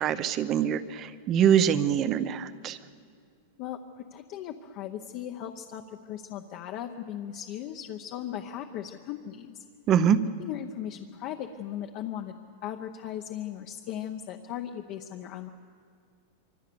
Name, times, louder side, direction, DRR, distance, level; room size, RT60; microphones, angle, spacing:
voice 1, 0.0-2.8 9.9-10.2, right 9 dB, 25° right, 14 dB, 0.7 m, -24 dB
voice 2, 3.6-9.6 10.4-15.5, left 10 dB, 35° left, 4 dB, 0.8 m, -38 dB
25.0 x 25.0 x 6.9 m, 2.2 s
supercardioid pair, 175°, 0 cm